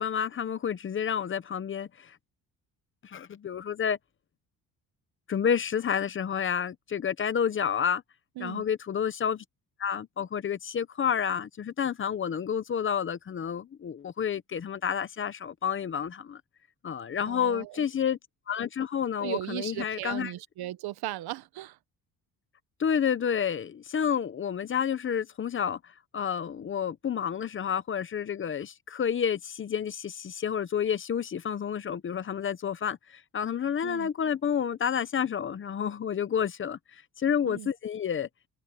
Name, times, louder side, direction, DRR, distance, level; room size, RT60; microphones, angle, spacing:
voice 1, 0.0-2.1 3.0-4.0 5.3-8.0 8.4-9.4 9.8-16.4 16.8-18.2 18.5-20.3 22.8-25.8 26.1-36.8 37.2-38.3, left 8 dB, 35° left, 0.8 m, -30 dB
voice 2, 17.3-17.9 19.2-21.8 33.8-34.1 37.4-37.7, right 15 dB, 85° right, 1.0 m, -37 dB
cardioid pair, 155°, 37 cm